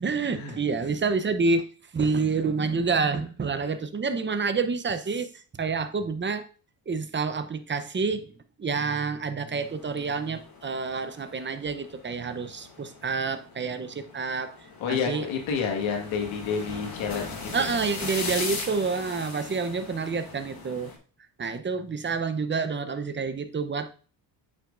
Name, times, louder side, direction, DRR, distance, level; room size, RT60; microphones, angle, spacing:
voice 1, 0.0-1.7 1.9-6.5 6.9-8.3 8.6-14.6 14.9-15.3 17.5-20.9 21.4-23.9, right 4 dB, 25° right, 11 dB, 0.8 m, -28 dB
sound 1, 9.6-21.0, left 4 dB, 50° left, 2.4 m, -39 dB
voice 2, 14.8-17.8, left 6 dB, 85° left, 3 dB, 1.9 m, -29 dB
8.4 x 6.2 x 2.6 m, 0.38 s
cardioid pair, 80°, 46 cm